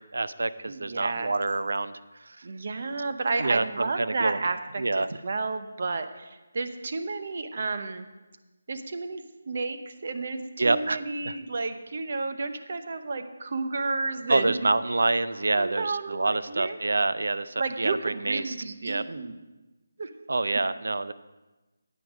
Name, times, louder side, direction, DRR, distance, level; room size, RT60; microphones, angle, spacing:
voice 1, 0.0-1.9 2.2-2.5 3.4-4.4 4.8-5.1 10.6-11.0 11.2-11.4 14.3-18.5 18.8-19.0 20.3-21.1, right 2 dB, 80° right, 13 dB, 0.5 m, -27 dB
voice 2, 0.7-1.3 2.4-8.1 8.7-14.5 15.5-16.8 17.6-19.3 20.0-20.1, right 3 dB, 45° right, 8 dB, 0.8 m, -32 dB
9.7 x 9.0 x 5.0 m, 1.1 s
figure-of-eight pair, 170°, 0 cm